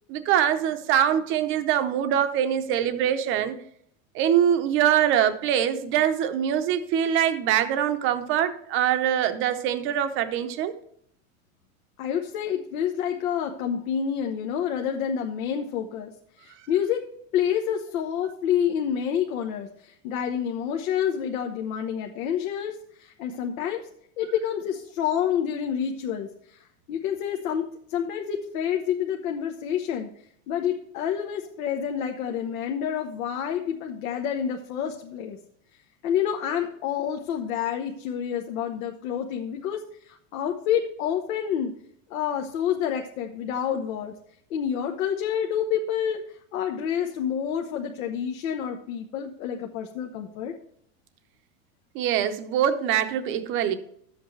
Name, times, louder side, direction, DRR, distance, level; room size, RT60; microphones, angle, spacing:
voice 1, 0.1-3.6 4.1-10.7 51.9-53.8, right 10 dB, 30° right, 9 dB, 0.7 m, -23 dB
voice 2, 12.0-17.0 17.3-23.8 24.2-30.1 30.5-35.4 36.0-41.7 42.1-44.1 44.5-50.5, left 8 dB, 85° left, 3 dB, 1.1 m, -28 dB
11.5 x 7.9 x 3.2 m, 0.69 s
supercardioid pair, 165°, 41 cm